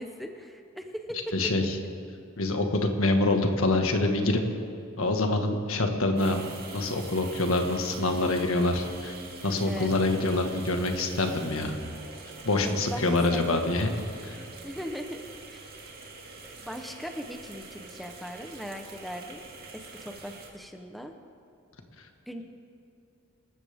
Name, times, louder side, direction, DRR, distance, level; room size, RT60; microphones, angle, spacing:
voice 1, 0.0-1.4 9.7-9.9 12.6-13.6 14.6-15.2 15.5-15.6 16.4-19.4 19.7-21.1 22.3-22.4, equal, ahead, 4 dB, 0.8 m, -39 dB
voice 2, 1.3-1.7 2.4-4.4 5.0-6.4 6.7-9.1 9.4-11.8 12.4-13.9 14.2-14.4, left 2 dB, 80° left, 4 dB, 1.6 m, -25 dB
sound 1, 6.2-20.5, right 3 dB, 45° right, 2.2 m, -45 dB
27.0 x 13.5 x 3.6 m, 2.6 s
head